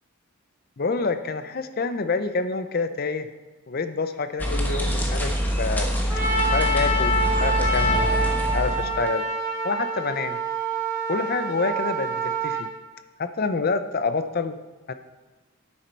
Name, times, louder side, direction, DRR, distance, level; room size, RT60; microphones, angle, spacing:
voice 1, 0.8-3.3 3.7-5.9 6.5-8.2 8.4-9.2 9.6-10.4 11.1-12.7 13.2-14.6 14.9-15.0, left 4 dB, 45° left, 11 dB, 0.6 m, -27 dB
sound 1, 4.4-9.1, equal, 10° left, 1.1 m, -25 dB
Trumpet, 6.1-12.7, right 1 dB, 15° right, 2.6 m, -26 dB
10.0 x 8.6 x 4.4 m, 1.3 s
head